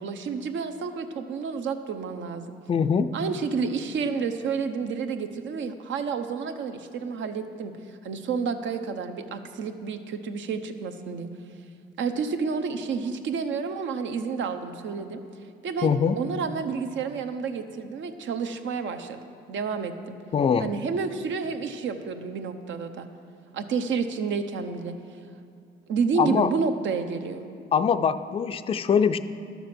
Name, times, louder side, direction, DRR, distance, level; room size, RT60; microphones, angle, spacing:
voice 1, 0.0-2.6 3.1-11.3 12.0-15.2 15.6-19.2 19.5-20.2 20.6-23.1 23.5-24.9 25.9-27.5, right 5 dB, 70° right, 7 dB, 0.8 m, -30 dB
voice 2, 2.7-3.1 15.8-16.2 20.3-20.7 26.2-26.5 27.7-29.2, left 6 dB, 30° left, 10 dB, 0.4 m, -22 dB
11.5 x 6.9 x 6.0 m, 2.5 s
cardioid pair, 90°, 20 cm